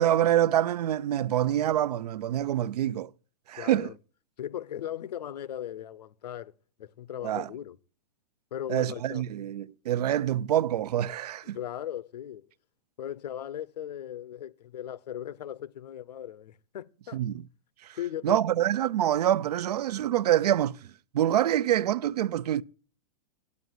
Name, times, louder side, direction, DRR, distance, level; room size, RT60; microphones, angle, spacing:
voice 1, 0.0-3.1 3.5-3.9 7.2-7.5 8.7-11.6 17.1-17.4 17.8-18.0 18.2-22.6, right 12 dB, 80° right, 0.6 m, -26 dB
voice 2, 3.6-4.0 4.4-6.5 6.8-7.8 8.5-9.2 11.5-12.5 13.0-17.2 17.9-18.4, left 11 dB, 90° left, 0.9 m, -38 dB
9.5 x 8.3 x 9.4 m
supercardioid pair, 175°, 20 cm